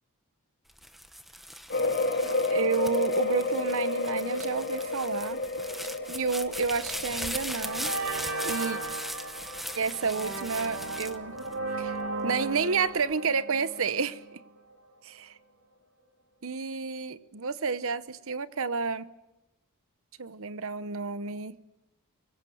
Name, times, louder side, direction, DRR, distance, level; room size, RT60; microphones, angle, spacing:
sound 1, 0.7-12.1 12.6-13.2, equal, ahead, 1.1 m, -40 dB
sound 2, 1.7-11.2 11.6-11.7 12.2-12.3, left 2 dB, 50° left, 3.0 m, -32 dB
voice 1, 2.5-5.4 6.1-7.9 8.4-8.8 9.7-11.4 11.8-12.0 12.2-14.2 16.4-19.1 20.2-21.6, right 5 dB, 65° right, 0.9 m, -30 dB
sound 3, 6.9-7.2 7.6-14.4, right 3 dB, 80° right, 3.1 m, -36 dB
25.0 x 22.0 x 7.8 m
head